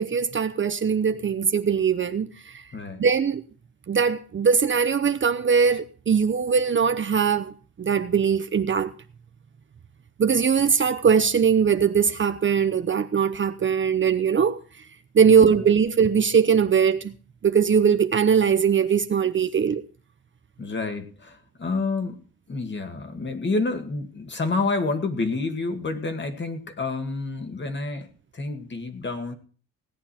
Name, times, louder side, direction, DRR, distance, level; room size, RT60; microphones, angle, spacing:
voice 1, 0.0-2.6 3.0-3.4 3.9-7.5 7.8-8.9 10.2-14.6 15.1-17.1 17.4-19.8, right 6 dB, 35° right, 0.8 m, -21 dB
voice 2, 2.7-3.0 15.2-15.6 20.6-22.2 22.5-29.4, left 3 dB, 35° left, 2.0 m, -29 dB
17.5 x 9.6 x 4.4 m
cardioid pair, 110°, 34 cm